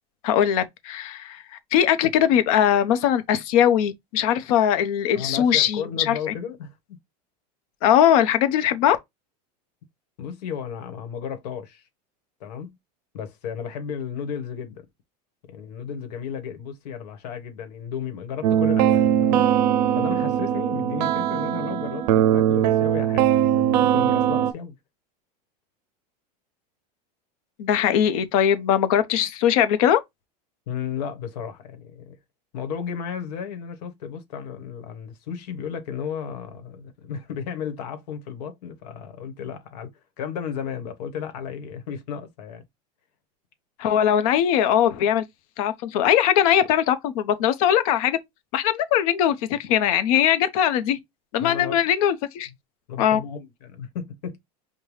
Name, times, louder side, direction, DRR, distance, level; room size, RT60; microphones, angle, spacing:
voice 1, 0.2-1.4 1.7-6.2 7.8-9.0 27.6-30.0 43.8-45.2 45.6-48.2 48.5-51.0 51.3-52.5 53.0-53.2, left 10 dB, 60° left, 0.7 m, -20 dB
voice 2, 5.1-7.0 10.2-11.8 12.4-12.8 13.1-14.8 15.5-19.5 19.9-24.8 30.7-32.2 32.5-39.9 40.2-42.6 51.4-51.8 52.9-54.4, left 7 dB, 80° left, 1.1 m, -34 dB
sound 1, 18.4-24.5, right 10 dB, 80° right, 0.5 m, -20 dB
5.3 x 2.2 x 3.1 m
supercardioid pair, 160°, 21 cm